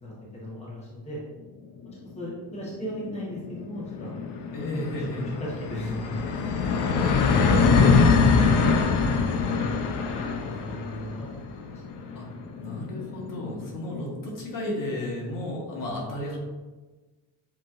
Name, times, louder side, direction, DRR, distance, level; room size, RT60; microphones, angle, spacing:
voice 1, 0.0-1.2 1.8-4.4 5.4-6.4 6.7-8.0 9.2-9.8 10.1-11.8, equal, 15° left, -5 dB, 0.9 m, -37 dB
sound 1, 2.0-2.1 2.4-2.5 2.7-14.2, left 5 dB, 65° left, 0.6 m, -24 dB
voice 2, 4.5-5.3 7.3-7.4 12.1-12.3 12.5-16.4, left 1 dB, 50° left, -2 dB, 1.3 m, -33 dB
7.3 x 3.0 x 2.4 m, 1.3 s
cardioid pair, 140°, 44 cm